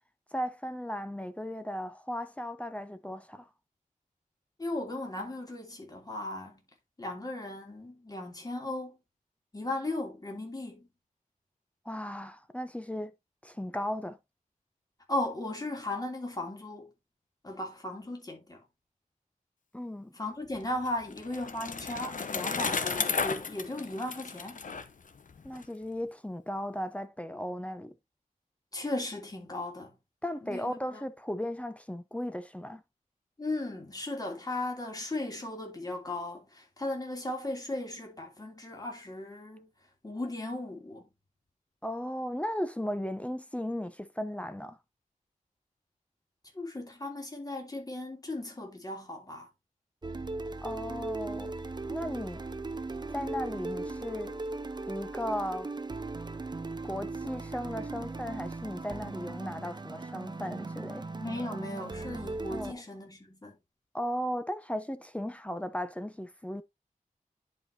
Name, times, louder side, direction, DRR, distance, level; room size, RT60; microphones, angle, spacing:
voice 1, 0.3-3.5 11.8-13.1 13.4-14.2 19.7-20.1 25.4-28.0 30.2-32.8 41.8-44.8 50.6-51.5 51.9-52.4 53.1-54.3 54.9-55.7 56.8-61.1 62.5-62.8 63.9-66.6, equal, 10° left, 0.8 m, -36 dB
voice 2, 4.6-6.6 7.0-9.0 9.5-10.9 15.1-16.9 17.4-18.6 20.1-24.6 28.7-29.9 30.4-31.0 33.4-39.7 40.0-41.1 46.5-49.5 61.2-63.6, left 2 dB, 25° left, 3.0 m, -36 dB
Bicycle, 20.6-25.6, left 5 dB, 70° left, 1.0 m, -34 dB
sound 1, 50.0-62.7, right 3 dB, 30° right, 0.8 m, -38 dB
10.5 x 5.1 x 2.8 m
wide cardioid pair, 110°, 14 cm